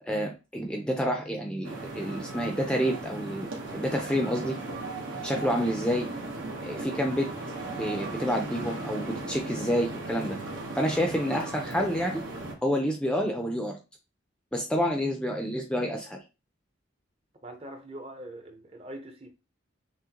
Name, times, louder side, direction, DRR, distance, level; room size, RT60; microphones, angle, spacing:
voice 1, 0.1-4.6 5.2-6.1 6.6-7.3 7.7-10.4 10.8-12.2 12.6-13.8 14.5-16.2, equal, 5° left, 0.5 m, -28 dB
sound 1, 1.6-12.5, right 2 dB, 80° right, 1.1 m, -37 dB
voice 2, 17.4-19.3, right 1 dB, 30° right, 0.7 m, -42 dB
6.1 x 2.1 x 2.9 m
head